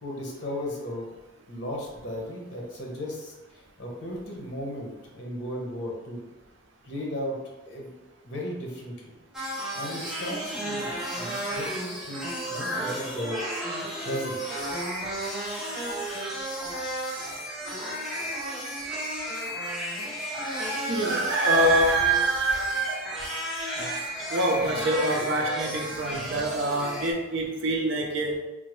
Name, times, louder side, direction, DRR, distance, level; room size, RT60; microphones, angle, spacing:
voice 1, 0.0-1.1 1.5-6.2 6.8-7.3 7.6-7.9 8.2-9.1 9.7-13.5 14.0-14.4, left 1 dB, 60° left, -2 dB, 0.9 m, -35 dB
sound 1, 9.3-27.1, right 1 dB, ahead, 0.5 m, -33 dB
voice 2, 20.9-23.0 24.3-28.3, right 2 dB, 70° right, 1 dB, 0.5 m, -25 dB
3.5 x 2.1 x 3.0 m, 1.1 s
head